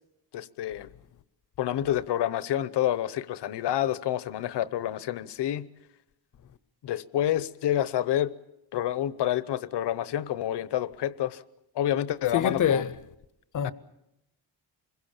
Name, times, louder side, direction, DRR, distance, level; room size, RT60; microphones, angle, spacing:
voice 1, 0.3-0.9 1.6-5.7 6.8-8.3 8.7-11.4 11.8-12.9 13.6-13.7, left 12 dB, 65° left, 1.0 m, -28 dB
voice 2, 12.3-12.9 13.5-13.7, left 8 dB, 45° left, 0.8 m, -24 dB
26.5 x 22.0 x 7.3 m
wide cardioid pair, 175°, 44 cm